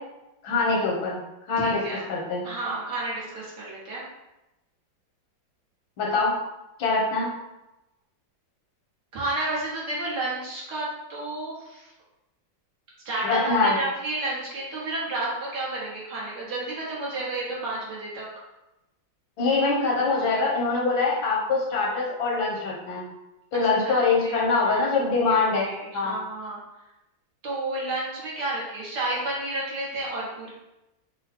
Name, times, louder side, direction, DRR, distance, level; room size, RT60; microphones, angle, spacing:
voice 1, 0.4-1.2 1.5-1.8 2.1-2.4 6.0-6.4 6.8-7.3 13.2-13.8 19.4-23.1 23.5-26.1, left 3 dB, 80° left, -3 dB, 1.9 m, -24 dB
voice 2, 1.6-2.0 2.4-4.0 9.1-11.9 13.1-18.3 23.6-26.6 27.4-30.5, right 2 dB, 60° right, -6 dB, 1.8 m, -31 dB
5.5 x 2.3 x 4.2 m, 0.94 s
omnidirectional pair, 2.1 m